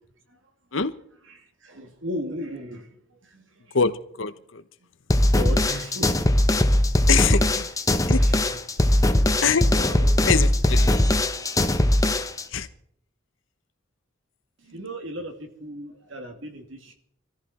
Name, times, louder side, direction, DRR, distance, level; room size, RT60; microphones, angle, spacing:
voice 1, 1.3-3.8 5.3-6.3 8.2-10.2 10.8-11.8 14.6-16.9, equal, 70° right, 4 dB, 2.6 m, -37 dB
voice 2, 4.2-4.6 7.1-7.7 8.1-8.2 9.4-9.7 10.2-10.9 12.5-12.7, left 5 dB, 70° left, 12 dB, 1.0 m, -23 dB
sound 1, 5.1-12.4, left 1 dB, 15° left, 0.9 m, -20 dB
20.0 x 14.0 x 4.3 m, 0.66 s
head